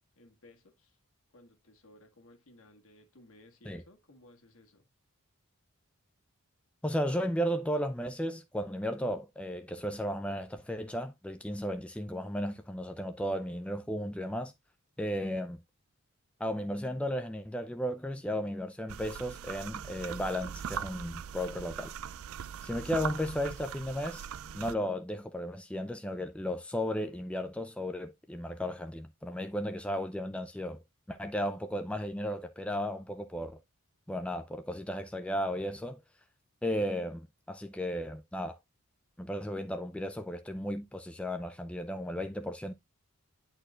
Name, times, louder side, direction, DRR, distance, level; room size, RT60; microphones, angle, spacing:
voice 1, 0.2-1.0 1.3-4.9, left 1 dB, 70° left, 1.6 m, -58 dB
voice 2, 6.8-14.5 15.0-15.6 16.4-21.9 22.6-24.3 24.5-30.8 31.1-33.6 34.1-36.0 36.6-38.6 39.2-42.7, equal, 5° left, 0.4 m, -34 dB
sound 1, 18.9-24.7, right 8 dB, 70° right, 0.4 m, -40 dB
10.0 x 4.4 x 2.4 m
head